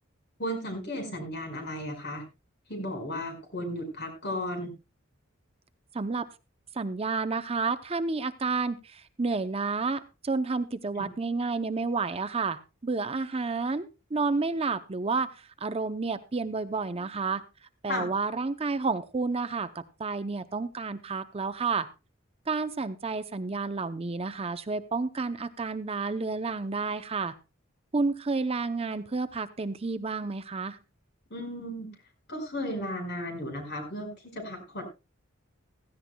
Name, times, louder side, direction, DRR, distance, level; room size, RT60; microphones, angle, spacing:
voice 1, 0.4-2.2 2.7-4.7 11.0-11.1 17.9-18.1 31.3-31.9 32.3-34.8, left 1 dB, 55° left, 4 dB, 5.0 m, -35 dB
voice 2, 5.9-6.3 6.7-17.4 17.8-21.9 22.5-27.3 27.9-30.8, right 4 dB, 30° right, 11 dB, 0.6 m, -30 dB
16.5 x 15.0 x 2.2 m, 0.28 s
head